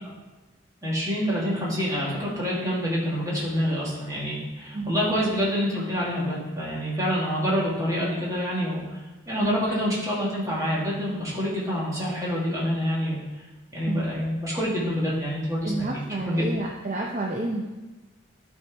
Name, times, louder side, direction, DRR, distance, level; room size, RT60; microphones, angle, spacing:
voice 1, 0.8-13.2 13.7-16.5, equal, 15° right, -6 dB, 2.0 m, -27 dB
voice 2, 4.7-5.0 9.4-9.5 13.9-14.1 15.6-17.7, right 2 dB, 35° right, -2 dB, 0.6 m, -30 dB
11.5 x 4.5 x 3.4 m, 1.2 s
head